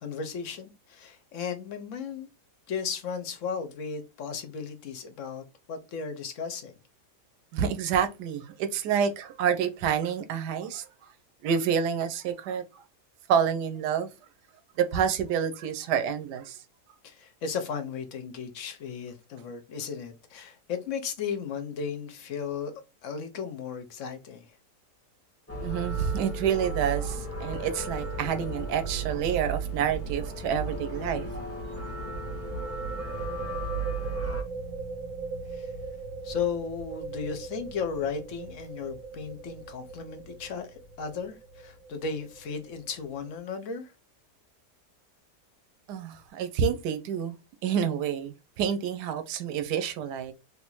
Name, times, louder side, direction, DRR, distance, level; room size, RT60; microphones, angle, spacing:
voice 1, 0.0-2.3 2.7-6.7 17.0-22.7 23.0-24.5 35.5-35.7 36.2-43.9, left 6 dB, 60° left, 0.9 m, -35 dB
voice 2, 7.5-10.9 11.4-12.8 13.3-14.1 14.8-16.6 25.6-31.3 31.7-31.8 45.9-47.4 47.6-50.3, right 8 dB, 80° right, 1.2 m, -28 dB
sound 1, 25.5-34.4, right 3 dB, 15° left, 0.5 m, -34 dB
sound 2, 28.9-29.2 29.4-29.5 32.0-43.4, right 4 dB, 60° right, 0.9 m, -40 dB
3.4 x 2.5 x 3.0 m
omnidirectional pair, 1.8 m